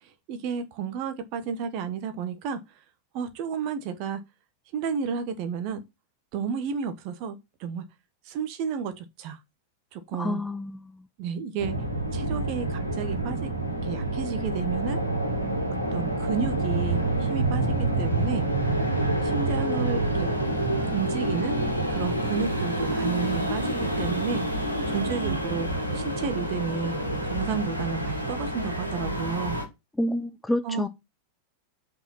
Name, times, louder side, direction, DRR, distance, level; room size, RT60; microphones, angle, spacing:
voice 1, 0.0-2.6 3.1-4.2 4.7-5.8 6.3-7.8 8.2-9.4 9.9-10.4 11.2-11.7 12.1-13.5 13.8-15.0 15.9-18.5 19.2-20.3 20.9-21.5 21.9-25.7 25.9-27.0 27.2-29.6 30.6-30.9, right 6 dB, 45° right, 1.3 m, -32 dB
voice 2, 10.1-11.0 30.0-30.9, left 1 dB, 5° left, 0.6 m, -28 dB
sound 1, 11.6-29.6, right 1 dB, 90° left, 2.0 m, -27 dB
5.7 x 4.8 x 5.6 m
figure-of-eight pair, 90°, 0 cm